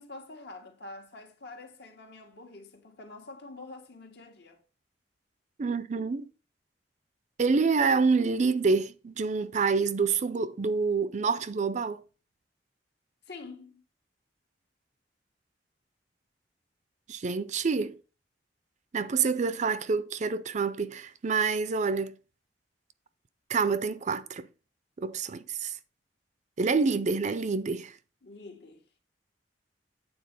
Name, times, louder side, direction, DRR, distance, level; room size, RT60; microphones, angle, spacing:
voice 1, 0.0-4.6 13.3-13.8 28.2-28.8, left 3 dB, 65° left, 1.6 m, -46 dB
voice 2, 5.6-6.3 7.4-12.0 17.1-18.0 18.9-22.2 23.5-24.5 25.0-25.8 26.6-28.0, right 4 dB, 40° right, 0.5 m, -27 dB
8.7 x 4.1 x 5.3 m
head